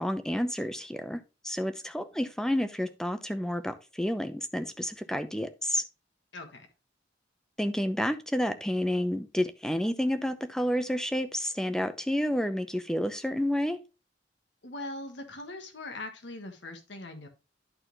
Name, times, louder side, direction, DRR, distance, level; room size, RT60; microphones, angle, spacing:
voice 1, 0.0-5.8 7.6-13.8, equal, 5° left, 9 dB, 0.7 m, -30 dB
voice 2, 6.3-6.7 14.6-17.3, left 2 dB, 75° left, 5 dB, 1.4 m, -41 dB
11.0 x 4.2 x 3.1 m, 0.30 s
head